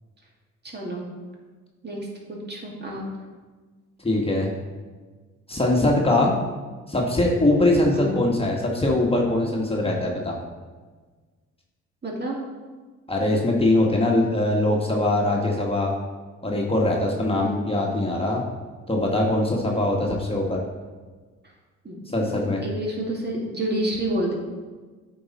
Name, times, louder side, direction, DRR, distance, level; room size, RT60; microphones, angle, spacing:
voice 1, 0.7-1.1 1.8-2.0 2.5-3.1 7.9-8.2 12.0-12.4 17.3-17.6 21.8-24.3, right 1 dB, 35° right, -2 dB, 2.1 m, -29 dB
voice 2, 4.0-4.5 5.5-6.3 6.9-10.4 13.1-15.9 16.4-18.4 18.9-20.6 22.1-22.6, left 1 dB, 20° left, -2 dB, 1.4 m, -22 dB
8.5 x 4.8 x 4.1 m, 1.4 s
supercardioid pair, 65°, 29 cm